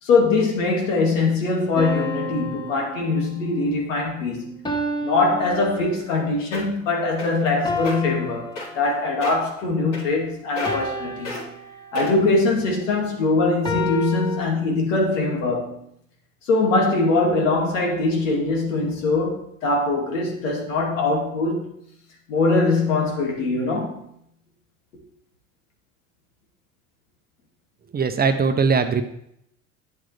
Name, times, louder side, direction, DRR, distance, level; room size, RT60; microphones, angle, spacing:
voice 1, 0.0-4.5 5.0-11.5 11.9-15.8 16.5-21.7 22.3-24.0, left 3 dB, 80° left, 0 dB, 2.4 m, -22 dB
sound 1, 1.8-3.5 4.6-6.3 7.6-9.3 10.6-12.1 13.6-14.4, left 1 dB, 10° left, 1.5 m, -31 dB
sound 2, 6.2-6.3 6.5-6.8 7.2-7.5 7.8-7.9 8.6-8.9 9.2-9.5 9.9-10.3 10.6-10.9 11.2-11.4 11.9-12.3 12.9-13.0, left 2 dB, 55° left, 3.8 m, -32 dB
voice 2, 27.9-29.0, right 5 dB, 25° right, 7 dB, 0.8 m, -20 dB
9.3 x 7.6 x 3.4 m, 0.73 s
hypercardioid pair, 85°, 37 cm